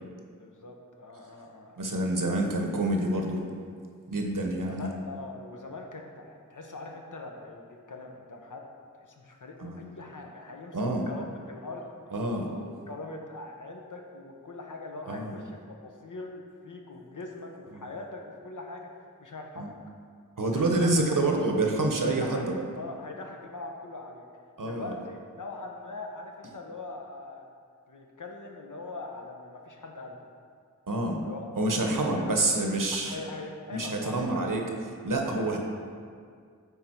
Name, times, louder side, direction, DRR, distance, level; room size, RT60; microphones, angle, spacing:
voice 1, 0.3-1.8 4.5-8.7 8.9-11.9 12.5-19.7 20.5-21.2 22.0-22.4 22.8-24.2 24.6-27.5 27.9-30.2 31.2-31.5 31.8-32.3 32.9-34.5 35.2-35.6, left 3 dB, 70° left, 1 dB, 0.9 m, -42 dB
voice 2, 1.8-3.4 4.1-4.9 9.6-9.8 10.7-11.1 12.1-12.5 15.1-15.3 17.7-17.8 19.6-19.7 20.4-22.6 24.6-24.9 30.9-31.2 31.6-33.2 33.7-34.6 35.0-35.6, right 2 dB, 80° right, 1 dB, 0.9 m, -27 dB
9.2 x 3.5 x 4.4 m, 2.1 s
wide cardioid pair, 50°, 32 cm